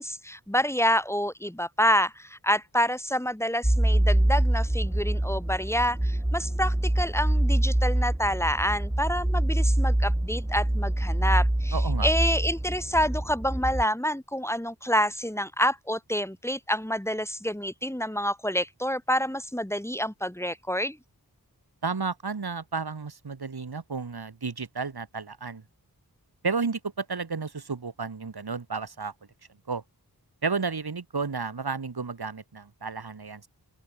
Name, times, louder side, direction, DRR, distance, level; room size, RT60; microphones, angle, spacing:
voice 1, 0.0-21.0, equal, 5° left, 2.9 m, -28 dB
sound 1, 3.6-13.8, right 1 dB, 10° right, 2.8 m, -25 dB
voice 2, 11.7-12.1 21.8-25.6 26.4-29.1 29.7-29.8 30.4-33.5, right 4 dB, 75° right, 5.7 m, -32 dB
open air
wide cardioid pair, 85°, 38 cm